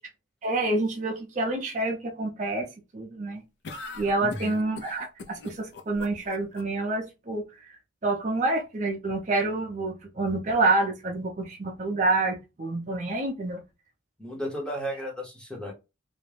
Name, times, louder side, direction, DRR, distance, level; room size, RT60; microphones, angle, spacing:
voice 1, 0.4-2.7 2.9-3.4 3.9-7.8 8.0-13.6, right 2 dB, 40° right, 0.5 m, -28 dB
sound 1, 3.6-6.6, left 3 dB, 65° left, 0.4 m, -41 dB
voice 2, 4.2-4.5 14.2-15.7, equal, 5° left, 0.7 m, -34 dB
2.3 x 2.0 x 3.1 m
head